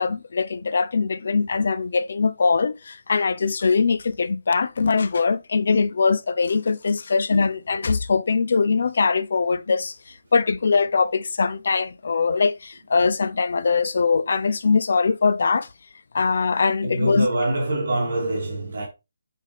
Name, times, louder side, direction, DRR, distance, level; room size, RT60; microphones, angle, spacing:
voice 1, 0.0-15.7 16.1-17.3, left 4 dB, 55° left, 0.6 m, -22 dB
voice 2, 16.8-18.9, right 1 dB, 55° right, 2.7 m, -24 dB
8.2 x 4.2 x 3.4 m
hypercardioid pair, 175°, 0 cm